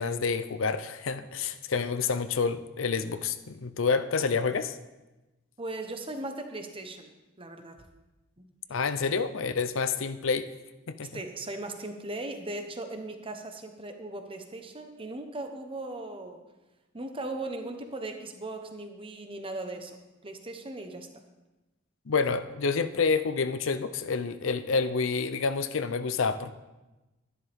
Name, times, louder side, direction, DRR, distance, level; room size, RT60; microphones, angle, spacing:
voice 1, 0.0-4.8 8.7-10.5 10.9-11.2 22.1-26.5, left 5 dB, 70° left, 12 dB, 0.6 m, -28 dB
voice 2, 5.6-7.1 7.4-7.9 8.4-8.5 11.1-16.4 16.9-21.1, right 2 dB, 25° right, 6 dB, 1.1 m, -38 dB
12.5 x 11.0 x 3.6 m, 1.1 s
head